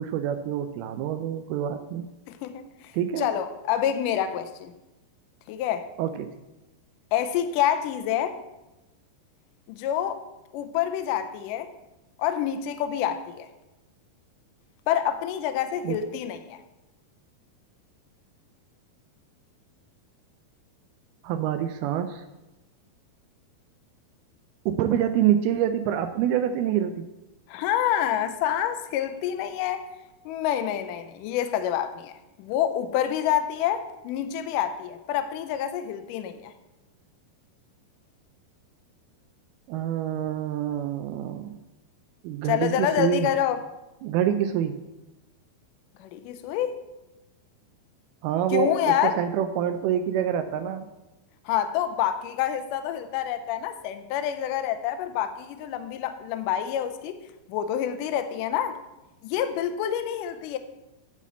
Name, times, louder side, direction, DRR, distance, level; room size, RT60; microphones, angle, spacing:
voice 1, 0.0-2.1 2.9-3.3 6.0-6.3 15.8-16.0 21.2-22.2 24.7-27.1 39.7-41.6 42.2-43.3 44.0-44.8 48.2-50.9, right 10 dB, 85° right, 7 dB, 2.5 m, -26 dB
voice 2, 2.3-4.7 5.5-5.9 7.1-8.4 9.7-10.2 10.5-11.7 12.2-13.5 14.9-16.6 27.5-29.8 30.3-32.1 32.4-36.5 42.4-43.6 46.0-46.8 48.5-49.2 51.5-57.2 57.5-58.8 59.2-60.6, left 10 dB, 80° left, 9 dB, 1.9 m, -27 dB
10.5 x 4.1 x 7.2 m, 1.0 s
omnidirectional pair, 4.4 m